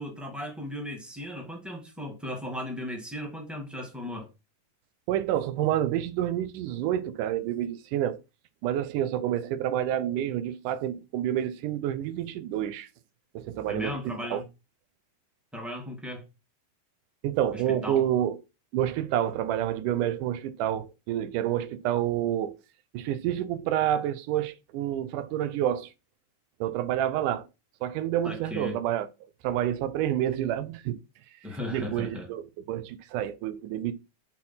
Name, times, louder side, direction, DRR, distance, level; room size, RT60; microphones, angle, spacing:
voice 1, 0.0-4.3 13.7-14.4 15.5-16.2 17.5-18.1 28.2-28.8 31.4-32.3, left 1 dB, ahead, 0.5 m, -36 dB
voice 2, 5.1-8.2 8.6-12.9 13.4-14.4 17.2-18.4 18.7-22.6 22.9-25.9 26.6-27.5 27.8-29.1 29.4-31.0 31.7-32.4 32.7-33.9, right 11 dB, 80° right, 2.3 m, -28 dB
6.2 x 4.3 x 5.5 m
omnidirectional pair, 3.7 m